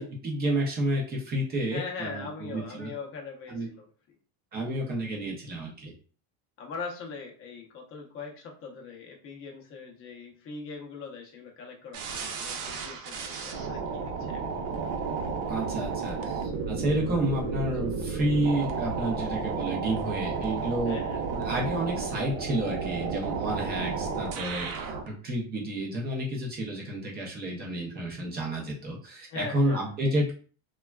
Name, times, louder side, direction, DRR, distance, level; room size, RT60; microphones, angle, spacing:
voice 1, 0.0-2.9 3.5-3.7 4.5-5.9 15.5-21.0 21.3-30.4, right 1 dB, 20° right, 0 dB, 0.5 m, -30 dB
voice 2, 1.7-4.2 6.6-14.7 20.8-21.2 29.3-29.8, left 4 dB, 30° left, 1 dB, 0.5 m, -41 dB
sound 1, 11.9-25.1, right 5 dB, 85° right, 0.7 m, -32 dB
3.2 x 2.3 x 2.2 m, 0.40 s
cardioid pair, 160°, 47 cm